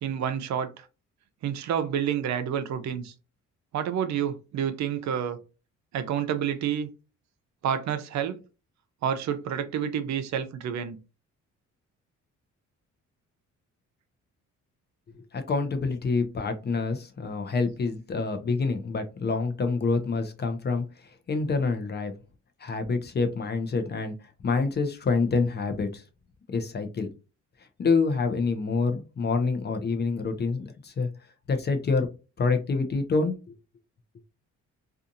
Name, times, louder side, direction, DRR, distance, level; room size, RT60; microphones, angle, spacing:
voice 1, 0.0-0.9 1.4-3.1 3.7-5.4 5.9-6.9 7.6-8.4 9.0-11.0, right 8 dB, 65° right, 0.5 m, -29 dB
voice 2, 15.3-22.1 22.6-24.1 24.4-26.0 26.5-27.1 27.8-31.1 31.5-32.1 32.4-33.5, left 4 dB, 35° left, 0.6 m, -27 dB
2.7 x 2.4 x 2.5 m
cardioid pair, 90°, 30 cm